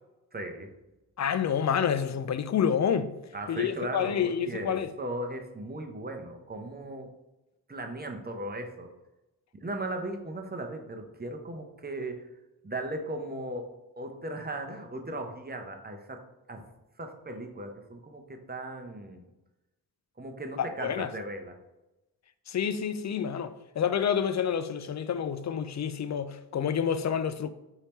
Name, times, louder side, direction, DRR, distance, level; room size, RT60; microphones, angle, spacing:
voice 1, 0.3-0.7 3.3-7.1 7.7-8.9 9.6-12.2 12.6-16.2 16.5-16.6 17.0-19.2 20.2-21.5, right 1 dB, 25° right, 0.7 m, -37 dB
voice 2, 1.2-3.2 3.5-4.9 20.6-21.1 22.5-27.5, left 8 dB, 45° left, 0.4 m, -28 dB
3.3 x 2.8 x 4.3 m
cardioid pair, 40°, 41 cm